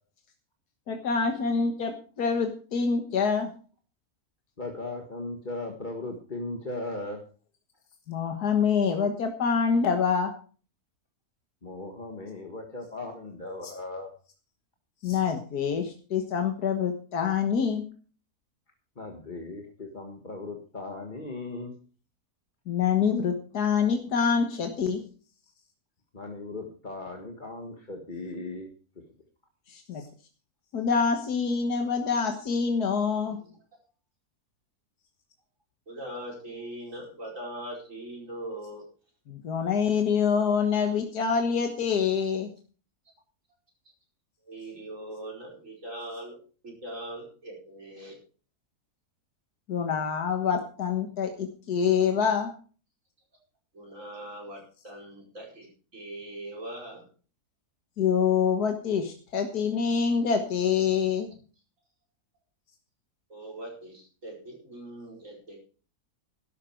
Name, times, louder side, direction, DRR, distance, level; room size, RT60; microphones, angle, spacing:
voice 1, 0.9-3.5 8.1-10.3 13.6-13.7 15.0-17.8 22.7-25.0 29.7-30.0 30.7-33.4 39.3-42.5 49.7-52.5 58.0-61.3, left 6 dB, 85° left, 4 dB, 1.9 m, -26 dB
voice 2, 4.6-7.2 11.6-14.1 19.0-21.7 26.1-28.7, left 2 dB, 30° left, 2 dB, 1.7 m, -37 dB
voice 3, 35.9-38.9 44.5-46.4 46.6-48.2 53.7-55.7 55.9-57.0 63.3-65.6, right 1 dB, 55° right, -2 dB, 5.4 m, -41 dB
13.0 x 11.5 x 4.5 m, 0.39 s
omnidirectional pair, 1.6 m